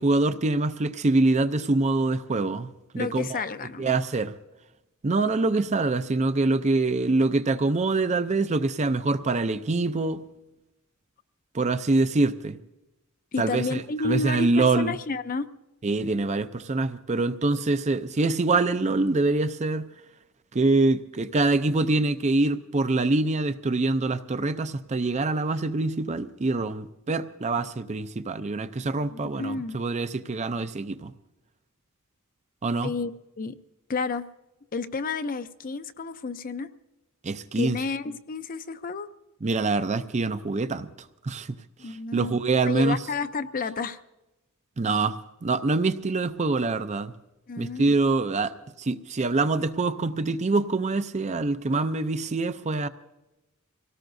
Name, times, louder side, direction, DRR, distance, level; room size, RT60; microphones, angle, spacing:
voice 1, 0.0-2.7 2.9-3.4 3.8-4.3 5.0-10.2 11.5-12.6 13.4-15.0 15.8-19.9 20.5-31.1 32.6-32.9 37.2-37.8 39.4-40.9 41.2-41.5 41.9-43.0 44.8-47.1 47.6-48.5 48.8-52.9, right 3 dB, 35° right, 11 dB, 0.5 m, -25 dB
voice 2, 3.0-4.0 13.3-15.5 29.1-29.8 32.8-33.1 33.4-33.5 33.9-34.2 34.7-36.7 37.6-39.1 41.8-42.4 42.7-44.0 47.5-47.9, left 4 dB, 40° left, 11 dB, 0.6 m, -31 dB
25.0 x 18.0 x 2.6 m, 0.97 s
head